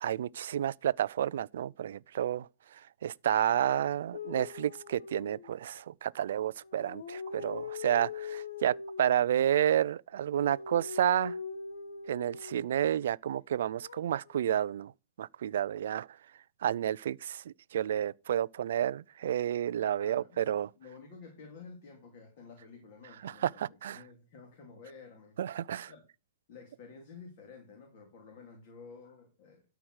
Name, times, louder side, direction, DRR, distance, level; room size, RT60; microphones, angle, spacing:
voice 1, 0.0-2.5 3.0-11.4 12.1-14.9 15.2-16.1 16.6-20.7 23.2-24.0 25.4-25.9, right 10 dB, 55° right, 0.4 m, -30 dB
sound 1, 4.1-5.8 6.6-9.3 10.1-12.7 13.8-14.4, left 5 dB, 85° left, 1.3 m, -42 dB
voice 2, 20.0-25.6 25.9-26.0 26.5-29.6, left 5 dB, 35° left, 2.7 m, -52 dB
12.5 x 4.7 x 6.3 m
hypercardioid pair, 170°, 0 cm